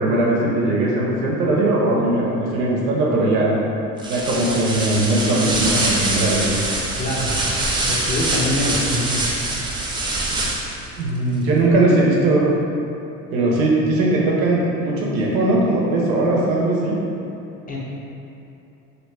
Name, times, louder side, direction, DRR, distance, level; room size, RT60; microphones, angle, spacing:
voice 1, 0.0-3.5 4.1-6.4 11.0-12.4 13.3-17.0, right 2 dB, 80° right, -4 dB, 0.8 m, -19 dB
sound 1, 4.0-10.9, right 2 dB, 10° right, 0.4 m, -24 dB
voice 2, 7.0-7.4 7.8-9.2 17.7-17.8, left 1 dB, 20° left, -5 dB, 0.7 m, -24 dB
3.1 x 2.9 x 3.2 m, 2.8 s
hypercardioid pair, 75°, 42 cm